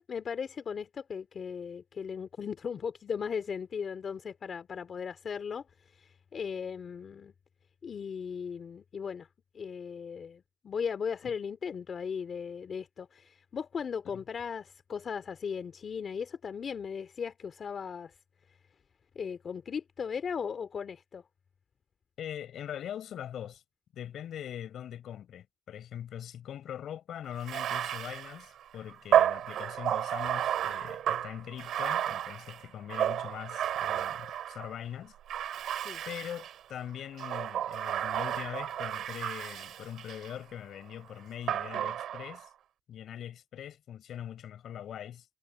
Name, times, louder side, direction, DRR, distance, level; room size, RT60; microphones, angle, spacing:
voice 1, 0.0-5.6 5.9-7.3 7.8-9.3 9.5-18.1 19.1-21.2 35.8-36.0, left 6 dB, 50° left, 2.6 m, -37 dB
voice 2, 22.2-23.6 23.9-35.1 36.0-42.5 42.9-45.2, left 10 dB, 70° left, 4.9 m, -42 dB
Bathtub (filling or washing), 27.4-34.7 35.3-36.6 37.1-40.3 41.5-42.4, right 10 dB, 75° right, 3.7 m, -32 dB
cardioid pair, 90°, 0 cm